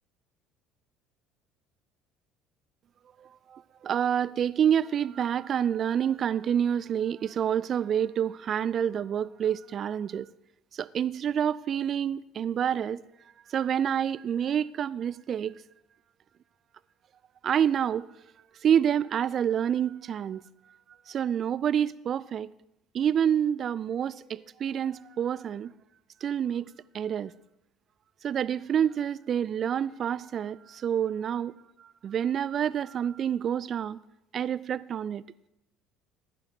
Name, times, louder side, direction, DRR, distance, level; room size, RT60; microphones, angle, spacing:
voice 1, 3.2-10.3 10.7-13.0 13.5-15.6 17.4-18.0 18.6-20.4 21.1-22.5 22.9-25.7 26.2-26.7 26.9-27.3 28.2-31.5 31.8-34.0 34.3-35.2, right 9 dB, 40° right, 0.4 m, -28 dB
15.0 x 11.5 x 3.1 m
figure-of-eight pair, 60°, 0 cm